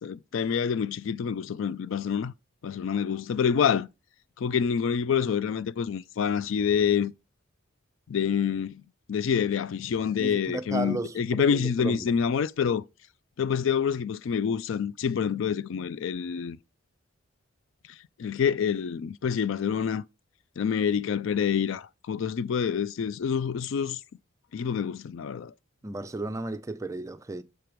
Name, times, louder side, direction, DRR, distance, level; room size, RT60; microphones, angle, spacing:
voice 1, 0.0-2.3 2.6-3.9 4.4-7.1 8.1-8.8 9.1-12.8 13.4-16.6 18.2-20.0 20.6-24.0 24.5-25.5, left 7 dB, 65° left, 0.3 m, -27 dB
voice 2, 10.2-12.1 25.8-27.4, right 2 dB, 15° right, 0.4 m, -34 dB
6.8 x 4.5 x 5.0 m
head